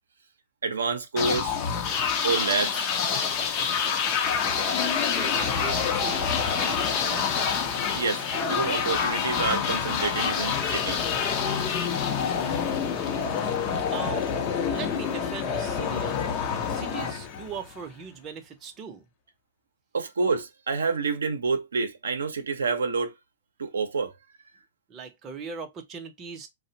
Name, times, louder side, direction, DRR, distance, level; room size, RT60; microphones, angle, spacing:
voice 1, 0.6-1.5 2.2-2.9 7.9-11.0 19.9-23.1 23.6-24.1, right 4 dB, 85° right, 0.5 m, -28 dB
sound 1, 1.2-17.9, left 6 dB, 35° left, 0.6 m, -27 dB
voice 2, 4.7-7.6 13.9-14.2 14.7-19.0 24.9-26.5, right 6 dB, 25° right, 0.6 m, -40 dB
2.5 x 2.0 x 2.7 m
hypercardioid pair, 125°, 0 cm